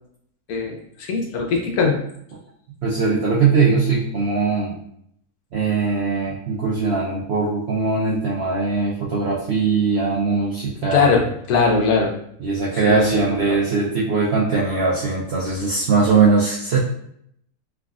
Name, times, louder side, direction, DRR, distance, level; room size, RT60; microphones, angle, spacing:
voice 1, 0.5-2.0 10.9-12.1 12.7-13.6, left 4 dB, 75° left, 0 dB, 1.1 m, -21 dB
voice 2, 2.8-4.8 5.5-11.1 12.4-16.8, right 4 dB, 70° right, -6 dB, 0.6 m, -20 dB
3.5 x 2.3 x 2.3 m, 0.70 s
omnidirectional pair, 1.6 m